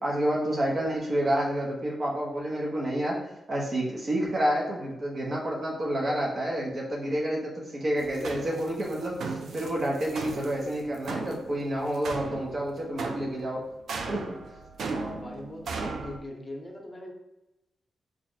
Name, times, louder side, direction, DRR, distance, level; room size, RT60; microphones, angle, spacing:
voice 1, 0.0-13.6 14.1-14.2, right 1 dB, 50° right, -2 dB, 1.2 m, -29 dB
sound 1, 8.0-16.2, right 4 dB, 75° right, 0.4 m, -37 dB
voice 2, 14.9-17.1, left 1 dB, 25° left, 0 dB, 0.9 m, -41 dB
3.4 x 2.4 x 4.0 m, 0.93 s
cardioid pair, 65°, 0 cm